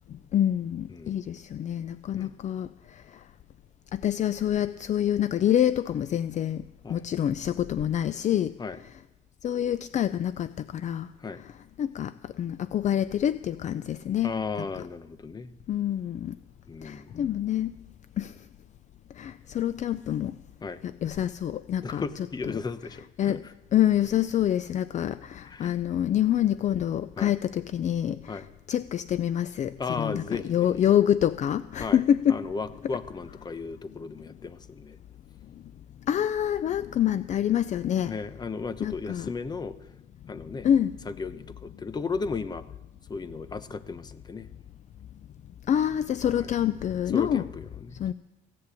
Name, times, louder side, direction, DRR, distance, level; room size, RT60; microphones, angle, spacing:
voice 1, 0.3-3.0 3.9-6.6 6.9-8.5 9.4-11.1 11.8-14.3 15.7-16.4 16.8-17.7 18.2-18.3 19.2-20.3 21.0-22.0 23.2-23.4 23.7-28.4 28.7-30.2 30.5-32.4 36.1-38.1 38.8-39.3 40.6-40.9 45.7-47.4 48.0-48.1, left 10 dB, 45° left, 15 dB, 0.5 m, -26 dB
voice 2, 14.2-15.5 16.7-17.1 20.6-20.8 21.8-23.5 25.4-25.7 27.2-27.3 28.3-28.5 29.8-30.9 31.8-35.0 38.0-39.8 40.3-40.7 41.0-42.6 43.1-44.5 46.3-46.5 47.1-48.0, left 4 dB, 25° left, 12 dB, 1.0 m, -35 dB
16.0 x 10.5 x 8.4 m, 1.0 s
cardioid pair, 110°, 17 cm